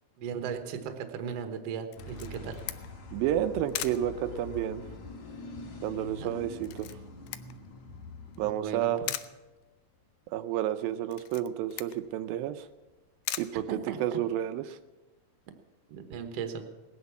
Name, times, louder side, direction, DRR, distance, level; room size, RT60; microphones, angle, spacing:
voice 1, 0.2-2.6 6.2-6.3 8.4-9.1 13.5-14.0 15.9-16.6, right 7 dB, 60° right, 6 dB, 1.8 m, -37 dB
Camera, 1.9-14.4, left 15 dB, 80° left, 2.0 m, -42 dB
sound 1, 2.0-8.5, left 3 dB, 55° left, 3.1 m, -44 dB
voice 2, 3.1-4.8 5.8-6.9 8.4-9.0 10.3-12.7 13.4-14.8, right 12 dB, 85° right, 10 dB, 2.4 m, -30 dB
19.0 x 9.6 x 7.0 m, 1.1 s
omnidirectional pair, 4.1 m